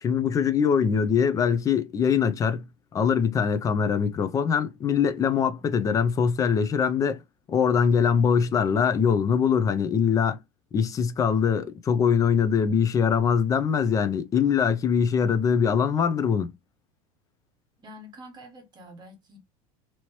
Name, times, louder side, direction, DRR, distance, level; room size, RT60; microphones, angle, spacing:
voice 1, 0.0-2.7 2.9-7.2 7.5-10.4 10.7-16.5, left 7 dB, 20° left, 0.4 m, -23 dB
voice 2, 17.8-19.4, equal, 25° right, 1.2 m, -46 dB
2.9 x 2.8 x 3.0 m
supercardioid pair, 135°, 18 cm